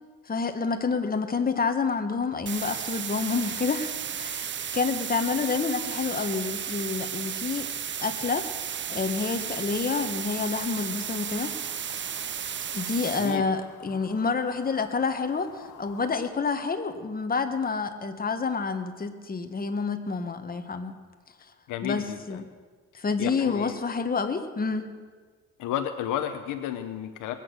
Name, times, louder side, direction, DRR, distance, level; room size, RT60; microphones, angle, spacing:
voice 1, 0.3-7.7 8.0-8.5 8.9-11.5 12.7-20.9 21.8-22.4 22.9-24.9, left 4 dB, 30° left, 7 dB, 1.4 m, -28 dB
sound 1, 2.5-13.4, right 8 dB, 40° right, 0.6 m, -34 dB
sound 2, 9.9-16.3, left 7 dB, 65° left, 1.6 m, -49 dB
voice 2, 13.1-13.5 21.7-22.4 22.9-23.8 25.6-27.3, left 10 dB, 90° left, 7 dB, 0.8 m, -32 dB
20.5 x 8.6 x 6.3 m, 1.5 s
cardioid pair, 90°, 30 cm